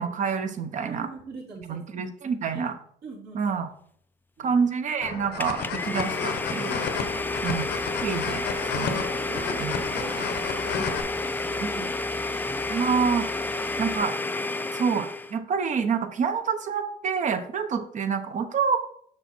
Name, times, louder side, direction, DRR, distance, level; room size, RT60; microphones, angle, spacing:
voice 1, 0.0-1.1 1.7-2.8 3.3-3.7 4.4-6.8 7.4-7.6 8.0-8.5 8.7-8.9 9.6-9.8 10.8-10.9 11.6-11.9 12.7-13.3 13.8-14.1 14.7-18.8, right 6 dB, 45° right, 9 dB, 1.0 m, -27 dB
voice 2, 0.8-1.8 2.4-2.6 3.0-3.4 4.4-4.5 8.7-12.9 13.5-13.6 14.6-15.0, right 3 dB, 65° right, -2 dB, 3.2 m, -43 dB
sound 1, 5.0-11.0, left 7 dB, 85° left, 1.1 m, -32 dB
Domestic sounds home sounds, 5.4-15.4, left 2 dB, 10° left, 0.4 m, -30 dB
sound 2, 7.0-14.0, left 1 dB, 5° right, 1.1 m, -45 dB
6.6 x 6.2 x 4.4 m, 0.64 s
cardioid pair, 110°, 17 cm